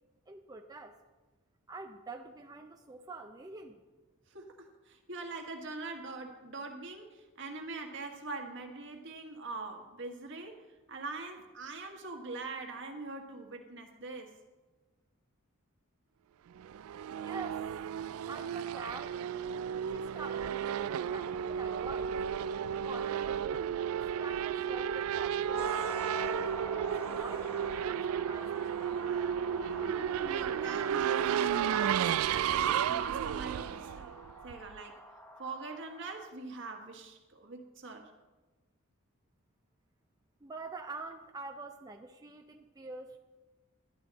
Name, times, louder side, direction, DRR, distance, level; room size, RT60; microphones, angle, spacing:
voice 1, 0.3-1.0 1.7-3.8 17.2-17.7 18.3-19.2 19.8-22.5 22.8-23.8 24.2-25.8 26.2-27.6 27.9-28.7 40.4-43.2, right 3 dB, 20° right, 4 dB, 0.5 m, -46 dB
voice 2, 4.3-14.3 29.5-34.1 34.4-35.0 35.4-38.1, right 3 dB, 60° right, 3 dB, 1.6 m, -43 dB
Race car auto racing / Accelerating revving vroom, 16.6-34.8, right 9 dB, 85° right, 0.3 m, -33 dB
sound 1, 25.5-36.3, left 1 dB, 10° left, 0.8 m, -47 dB
12.0 x 11.5 x 4.0 m, 1.2 s
head